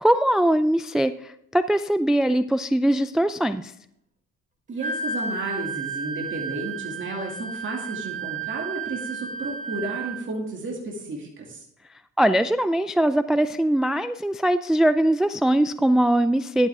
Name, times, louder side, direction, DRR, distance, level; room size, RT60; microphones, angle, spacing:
voice 1, 0.0-3.7 12.2-16.7, right 1 dB, ahead, 11 dB, 0.3 m, -21 dB
voice 2, 4.7-11.6, right 2 dB, 40° right, -2 dB, 2.5 m, -32 dB
Wind instrument woodwind instrument, 4.8-10.3, right 4 dB, 25° right, 1.6 m, -32 dB
11.5 x 8.0 x 3.6 m, 0.74 s
cardioid pair, 90°, 30 cm